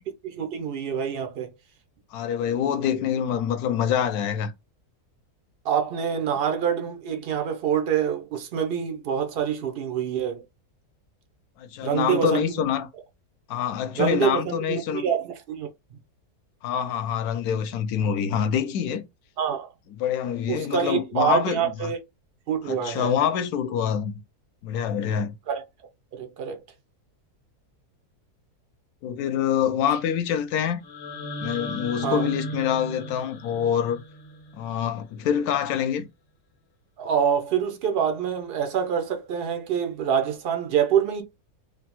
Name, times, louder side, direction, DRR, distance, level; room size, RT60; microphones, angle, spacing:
voice 1, 0.2-1.5 5.6-10.4 11.8-12.4 14.0-15.7 19.4-19.7 20.5-22.0 22.5-23.2 25.5-25.6 26.1-26.6 32.0-32.3 37.0-41.2, right 8 dB, 90° right, 0.5 m, -26 dB
voice 2, 2.1-4.5 11.6-12.9 13.5-15.0 16.6-19.0 20.0-21.9 22.7-24.2 24.6-25.4 29.0-30.8 31.4-34.0 34.5-36.1, left 8 dB, 75° left, 1.0 m, -26 dB
sound 1, 30.8-34.9, equal, 50° left, 0.8 m, -36 dB
3.3 x 2.0 x 2.9 m
omnidirectional pair, 1.7 m